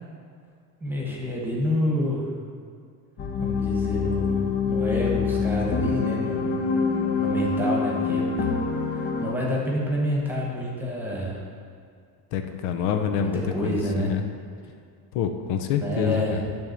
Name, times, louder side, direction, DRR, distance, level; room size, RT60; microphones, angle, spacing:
voice 1, 0.8-2.3 3.4-6.4 7.2-8.3 8.9-11.4 13.2-14.1 15.8-16.4, equal, 5° right, -3 dB, 1.2 m, -28 dB
sound 1, 3.2-9.3, left 5 dB, 25° left, 0.5 m, -25 dB
voice 2, 12.3-14.2 15.1-16.4, left 8 dB, 80° left, 6 dB, 0.8 m, -26 dB
10.5 x 3.6 x 6.6 m, 2.2 s
cardioid pair, 170°, 43 cm